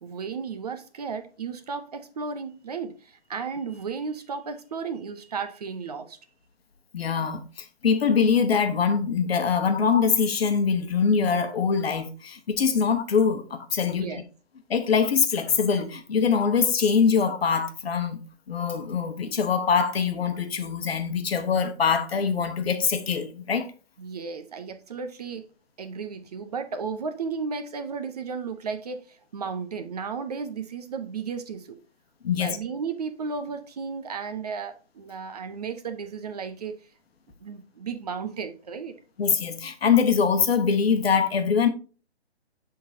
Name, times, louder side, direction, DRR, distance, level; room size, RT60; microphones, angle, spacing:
voice 1, 0.0-6.2 13.9-14.2 24.0-25.4 25.8-31.8 32.3-36.7 37.4-38.9, right 5 dB, 35° right, 0.6 m, -34 dB
voice 2, 6.9-14.1 14.7-18.2 18.5-23.7 32.2-32.6 39.2-41.7, left 6 dB, 65° left, 1.1 m, -23 dB
11.5 x 3.9 x 2.7 m
hypercardioid pair, 155°, 33 cm